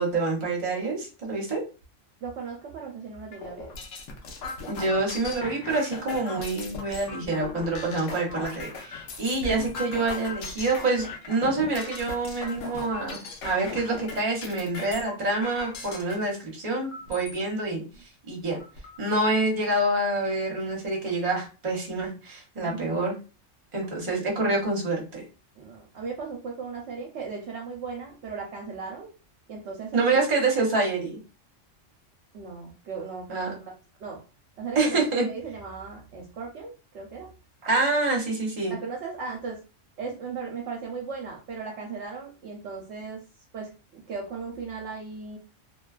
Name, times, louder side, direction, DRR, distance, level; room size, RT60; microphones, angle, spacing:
voice 1, 0.0-1.6 4.7-13.2 13.4-17.8 18.3-18.6 19.0-23.1 23.7-25.2 29.9-31.2 33.3-33.5 34.7-35.2 37.6-38.8, right 2 dB, 40° right, -2 dB, 0.9 m, -26 dB
voice 2, 2.2-3.7 9.4-9.5 22.6-23.0 25.6-29.1 29.5-30.2 32.3-33.7 34.0-34.2 34.6-37.3 38.7-39.6 40.0-43.2 43.5-45.4, right 5 dB, 70° right, 0 dB, 0.8 m, -37 dB
sound 1, 3.3-16.2 16.8-17.4 17.9-18.0 18.3-19.0, left 3 dB, 80° left, 1.0 m, -38 dB
2.6 x 2.2 x 2.3 m, 0.33 s
omnidirectional pair, 1.3 m